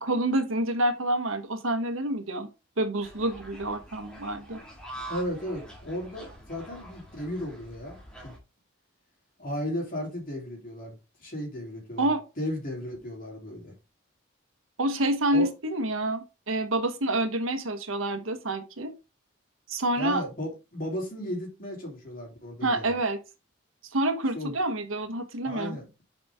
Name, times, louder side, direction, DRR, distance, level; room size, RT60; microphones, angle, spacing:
voice 1, 0.0-2.5 2.8-4.6 12.0-12.2 14.8-18.9 19.7-20.2 22.6-23.2 23.9-25.8, right 1 dB, 85° right, 1.3 m, -27 dB
sound 1, 3.0-8.4, right 1 dB, 5° left, 2.0 m, -45 dB
voice 2, 5.1-8.0 8.2-8.3 9.4-13.7 15.3-15.5 19.9-23.0 24.3-24.5 25.4-25.9, left 1 dB, 45° left, 3.2 m, -35 dB
7.1 x 5.2 x 3.5 m
head